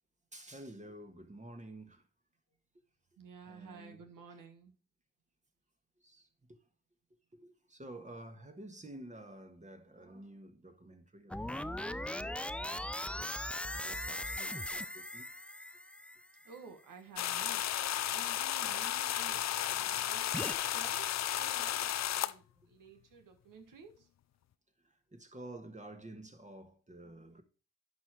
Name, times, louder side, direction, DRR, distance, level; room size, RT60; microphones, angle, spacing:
voice 1, 0.3-2.1 3.5-4.0 6.0-6.6 7.3-15.3 19.7-20.1 24.8-27.4, right 1 dB, 20° right, 1.5 m, -51 dB
voice 2, 3.2-4.8 16.4-21.9 22.1-24.1, right 5 dB, 70° right, 1.5 m, -53 dB
sound 1, 11.3-16.6 20.3-20.6, left 1 dB, 5° left, 0.5 m, -39 dB
sound 2, 17.2-22.3, left 12 dB, 55° left, 0.5 m, -34 dB
11.0 x 4.5 x 4.5 m
supercardioid pair, 50°, 33 cm